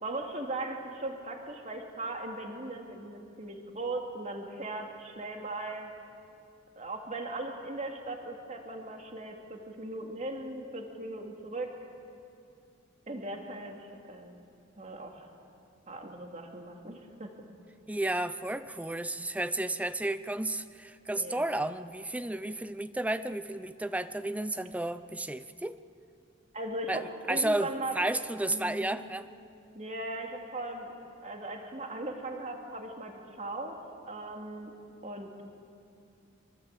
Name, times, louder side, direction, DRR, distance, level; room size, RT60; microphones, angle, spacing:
voice 1, 0.0-5.9 6.8-11.7 13.1-14.4 14.8-15.3 15.9-17.3 21.1-21.7 26.5-28.0 28.5-29.0 29.7-33.8 34.1-34.7 35.0-35.3, right 2 dB, 35° right, 2 dB, 2.7 m, -38 dB
voice 2, 17.9-25.8 26.9-29.3, right 1 dB, 5° right, 13 dB, 0.5 m, -32 dB
24.5 x 24.0 x 8.3 m, 2.5 s
head